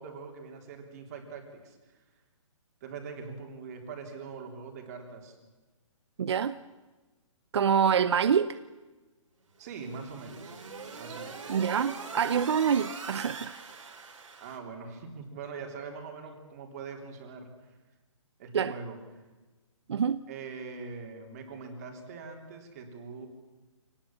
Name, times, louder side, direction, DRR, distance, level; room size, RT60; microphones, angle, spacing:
voice 1, 0.0-2.0 2.8-5.4 9.6-10.6 11.0-11.6 14.4-17.8 18.4-19.2 20.3-23.3, right 5 dB, 30° right, 3.5 m, -43 dB
voice 2, 6.2-6.5 7.5-8.6 11.5-13.5 18.5-18.7 19.9-20.2, right 7 dB, 55° right, 0.7 m, -26 dB
sound 1, 9.6-14.6, right 5 dB, 70° right, 3.8 m, -42 dB
25.5 x 19.0 x 7.3 m
hypercardioid pair, 170°, 17 cm